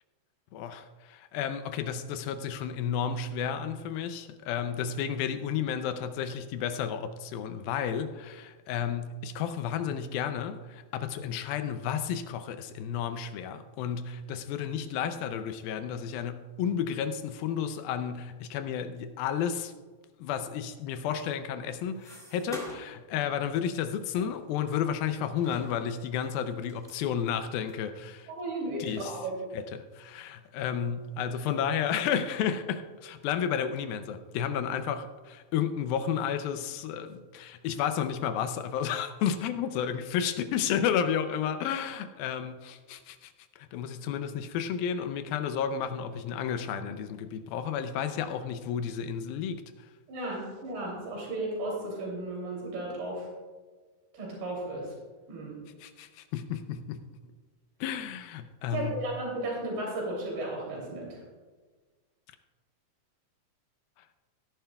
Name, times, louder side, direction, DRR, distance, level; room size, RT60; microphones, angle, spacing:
voice 1, 0.5-19.7 20.2-28.3 28.8-29.2 29.5-49.6 55.8-57.1 57.8-58.9, left 8 dB, 80° left, 9 dB, 2.3 m, -32 dB
sound 1, 21.2-23.0 23.4-23.6 24.2-25.0 25.4-27.8 28.4-28.5 28.7-28.8 29.5-29.8 30.2-30.9 31.2-32.0, left 1 dB, ahead, 1.7 m, -47 dB
voice 2, 28.3-29.4 50.1-53.3 54.1-54.9 55.3-55.6 58.7-61.1, right 2 dB, 90° right, -2 dB, 4.9 m, -34 dB
17.0 x 10.5 x 2.3 m, 1.4 s
omnidirectional pair, 4.4 m